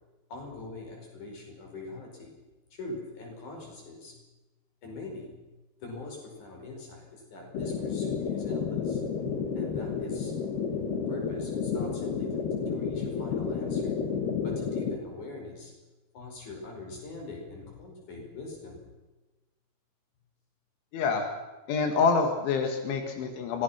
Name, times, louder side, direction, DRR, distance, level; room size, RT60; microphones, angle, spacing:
voice 1, 0.3-2.3 2.7-4.2 4.8-5.4 5.8-9.0 9.5-10.4 11.1-12.4 12.7-14.0 14.4-15.7 16.1-18.8, left 2 dB, 45° left, 1 dB, 6.5 m, -43 dB
sound 1, 7.5-15.0, left 6 dB, 65° left, 3.9 m, -31 dB
voice 2, 20.9-21.3 21.7-23.6, left 5 dB, 85° left, 4 dB, 4.4 m, -26 dB
25.0 x 19.0 x 5.9 m, 1.1 s
omnidirectional pair, 5.2 m